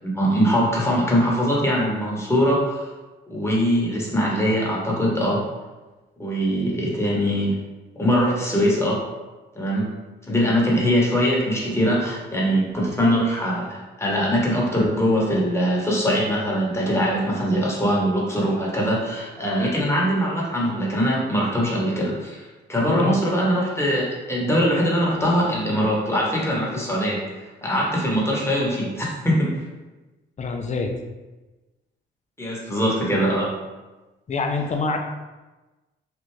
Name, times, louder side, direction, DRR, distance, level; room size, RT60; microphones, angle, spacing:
voice 1, 0.0-2.9 3.3-5.5 6.2-7.6 7.9-9.0 9.5-9.9 10.3-29.6 32.4-33.6, equal, 15° left, -4 dB, 1.2 m, -22 dB
voice 2, 22.8-23.2 30.4-31.0 34.3-35.0, left 4 dB, 35° left, 4 dB, 0.5 m, -25 dB
3.4 x 2.4 x 3.2 m, 1.2 s
cardioid pair, 70°, 20 cm